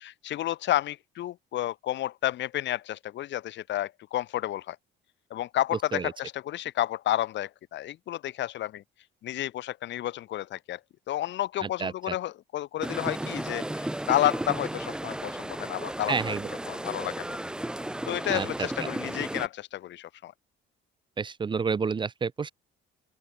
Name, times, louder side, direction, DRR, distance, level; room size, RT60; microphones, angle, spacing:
voice 1, 0.0-4.8 5.3-8.8 9.2-10.8 11.1-16.4 16.7-17.3 18.1-20.3, left 13 dB, 60° left, 3.4 m, -31 dB
voice 2, 11.8-12.1 16.1-16.5 18.3-18.5 21.2-22.5, right 5 dB, 25° right, 1.8 m, -29 dB
sound 1, 12.8-19.5, right 1 dB, 5° right, 1.0 m, -34 dB
open air
cardioid pair, 165°, 21 cm